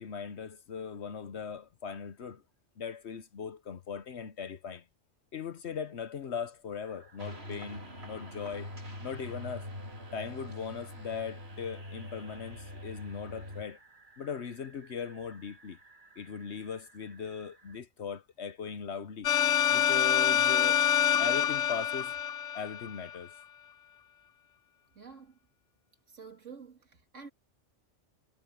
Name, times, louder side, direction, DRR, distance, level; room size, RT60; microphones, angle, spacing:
voice 1, 0.0-2.4 2.8-4.8 5.3-8.7 9.0-9.7 10.1-13.8 14.2-15.8 16.2-19.3 19.7-20.8 21.2-22.1 22.5-23.3, left 6 dB, 65° left, 1.2 m, -39 dB
sound 1, 6.8-17.8, right 4 dB, 40° right, 8.1 m, -60 dB
sound 2, 7.2-13.6, left 1 dB, 60° right, 4.4 m, -44 dB
sound 3, 19.2-23.1, left 9 dB, 90° left, 1.1 m, -26 dB
voice 2, 24.9-25.4 26.1-27.3, right 5 dB, 85° right, 2.7 m, -49 dB
omnidirectional pair, 1.2 m